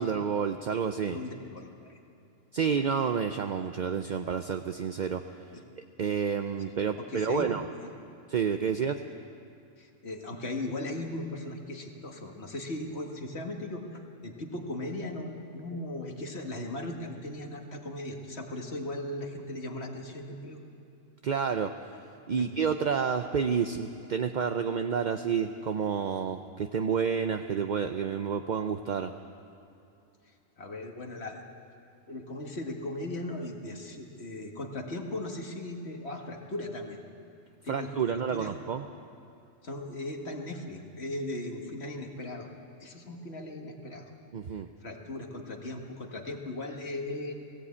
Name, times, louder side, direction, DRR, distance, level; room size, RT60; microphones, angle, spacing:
voice 1, 0.0-1.2 2.5-5.2 6.0-7.6 8.3-8.9 21.2-21.7 22.3-29.1 37.7-38.8 44.3-44.7, right 6 dB, 50° right, 7 dB, 0.6 m, -29 dB
voice 2, 1.1-2.0 5.5-5.6 7.1-7.5 8.8-8.9 9.8-20.6 22.4-22.5 30.6-31.4 32.1-37.0 37.6-38.5 39.6-42.5 42.8-44.1 44.8-47.3, left 1 dB, 50° left, 2 dB, 2.0 m, -38 dB
18.5 x 16.5 x 8.6 m, 2.7 s
omnidirectional pair, 1.4 m